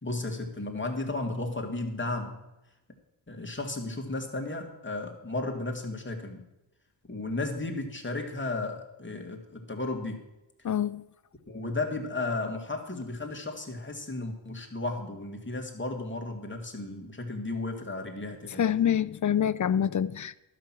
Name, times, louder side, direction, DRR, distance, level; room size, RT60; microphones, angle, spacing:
voice 1, 0.0-2.4 3.3-6.5 7.1-10.2 11.5-18.7, left 2 dB, 25° left, 2.4 m, -34 dB
voice 2, 10.6-11.0 18.6-20.4, left 9 dB, 40° left, 0.5 m, -26 dB
11.5 x 6.0 x 7.6 m
cardioid pair, 50°, 50 cm